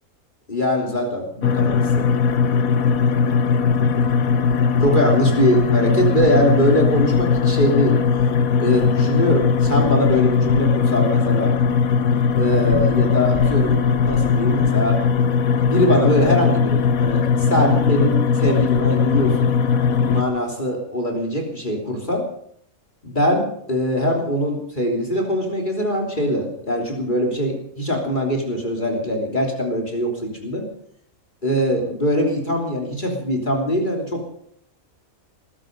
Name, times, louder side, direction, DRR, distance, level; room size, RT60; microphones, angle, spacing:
voice 1, 0.5-2.1 4.8-8.0 8.6-11.6 12.3-13.8 14.0-15.0 15.6-19.5 20.1-22.3 23.0-30.7 31.4-34.3, equal, 35° left, 1 dB, 3.4 m, -22 dB
sound 1, 1.4-20.2, left 6 dB, 85° left, 1.5 m, -19 dB
21.5 x 12.5 x 5.3 m, 0.66 s
omnidirectional pair, 1.4 m